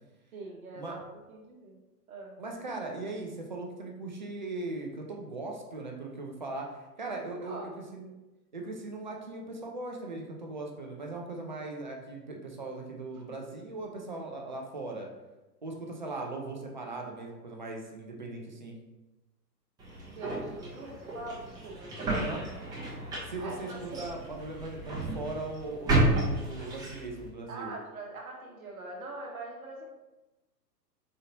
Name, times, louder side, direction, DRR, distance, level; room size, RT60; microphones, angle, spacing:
voice 1, 0.3-1.8 2.1-2.4 7.4-7.7 20.2-22.3 23.4-24.1 27.5-29.8, right 2 dB, 55° right, -1 dB, 0.9 m, -42 dB
voice 2, 2.4-8.1 8.5-15.1 15.6-18.8 22.1-22.4 23.3-27.8, right 2 dB, 30° right, 1 dB, 0.4 m, -39 dB
sound 1, 19.8-27.3, right 2 dB, 10° right, 0.7 m, -32 dB
4.2 x 3.7 x 2.7 m, 1.1 s
figure-of-eight pair, 110°, 50 cm